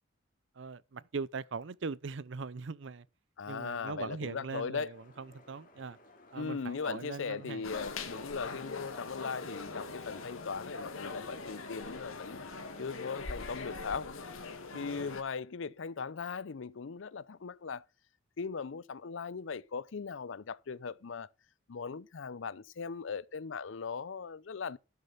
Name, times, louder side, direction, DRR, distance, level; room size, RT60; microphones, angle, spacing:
voice 1, 0.6-3.1 3.5-6.0 6.3-7.7 8.5-8.6 14.7-15.1, right 4 dB, 65° right, 0.5 m, -41 dB
voice 2, 3.4-4.9 6.3-12.4 12.8-14.1 14.7-17.8 18.4-21.3 21.7-24.8, left 5 dB, 70° left, 0.5 m, -39 dB
sound 1, 4.9-13.9, left 2 dB, 40° left, 2.8 m, -58 dB
sound 2, 7.6-15.2, left 3 dB, 90° left, 1.8 m, -42 dB
11.5 x 6.6 x 5.7 m
head